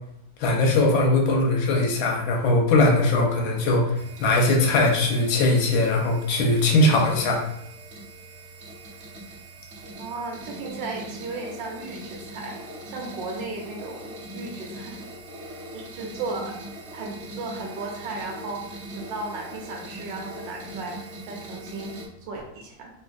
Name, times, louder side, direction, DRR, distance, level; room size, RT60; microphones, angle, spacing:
voice 1, 0.4-3.9 4.2-7.4, left 2 dB, 85° left, 0 dB, 1.4 m, -20 dB
sound 1, 3.9-22.1, right 1 dB, 60° right, 0.6 m, -41 dB
voice 2, 10.0-12.6 12.9-15.0 15.7-16.6 16.9-21.0 21.3-22.9, right 3 dB, 75° right, 1 dB, 1.2 m, -35 dB
3.3 x 2.7 x 2.4 m, 0.77 s
omnidirectional pair, 2.2 m